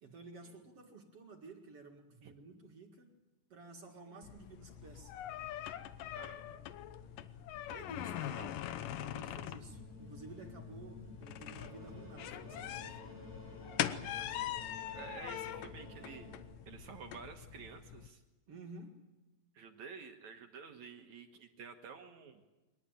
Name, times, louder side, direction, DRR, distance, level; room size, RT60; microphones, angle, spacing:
voice 1, 0.0-3.1 3.5-5.1 7.7-13.0 18.5-19.0, right 3 dB, 45° right, 3 dB, 2.5 m, -53 dB
sound 1, 4.2-18.1, left 11 dB, 70° left, 2.3 m, -43 dB
voice 2, 6.1-6.6 14.0-14.6 14.9-16.3 16.7-18.2 19.5-22.4, right 6 dB, 60° right, 5 dB, 2.3 m, -51 dB
sound 2, 9.6-16.4, left 1 dB, 45° left, 7.7 m, -52 dB
23.0 x 19.5 x 9.1 m, 1.1 s
omnidirectional pair, 4.4 m